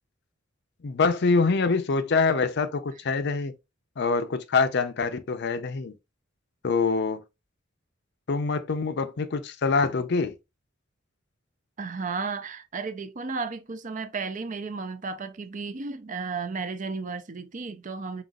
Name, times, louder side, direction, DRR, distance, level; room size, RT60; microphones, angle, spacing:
voice 1, 0.8-3.5 4.0-5.9 6.6-7.2 8.3-10.3, left 4 dB, 60° left, 0.6 m, -25 dB
voice 2, 11.8-18.2, right 4 dB, 40° right, 0.5 m, -33 dB
4.0 x 4.0 x 2.3 m
head